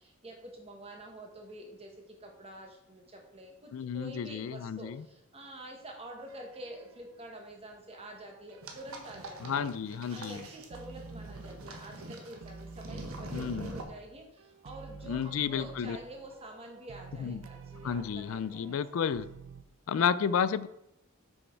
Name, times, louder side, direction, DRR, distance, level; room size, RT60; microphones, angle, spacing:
voice 1, 0.0-9.7 10.1-18.8, right 1 dB, 25° right, 1 dB, 1.4 m, -47 dB
voice 2, 3.7-5.0 9.4-10.5 13.3-13.7 15.1-16.0 17.2-17.4 17.8-19.3 19.9-20.7, left 7 dB, 70° left, 16 dB, 0.4 m, -31 dB
sound 1, 6.3-7.5 7.9-9.8 10.2-12.1 12.4-19.6, right 4 dB, 65° right, 0.5 m, -50 dB
sound 2, 8.6-13.8, right 2 dB, 80° right, 1.2 m, -44 dB
6.6 x 6.3 x 4.5 m, 0.80 s
head